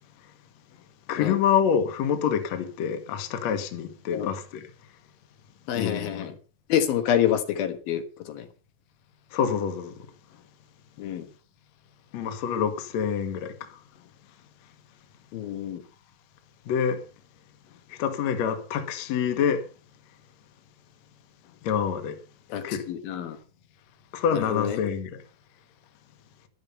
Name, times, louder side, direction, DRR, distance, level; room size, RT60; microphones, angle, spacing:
voice 1, 1.1-4.6 5.7-6.3 9.3-9.9 12.1-13.5 16.7-17.0 18.0-19.6 21.6-22.2 22.6-22.8 24.1-25.1, left 7 dB, 60° left, 2.4 m, -26 dB
voice 2, 5.7-6.3 6.7-8.5 11.0-11.3 15.3-15.8 22.5-23.4 24.3-24.8, left 10 dB, 85° left, 3.3 m, -27 dB
13.5 x 11.0 x 5.6 m
omnidirectional pair, 4.1 m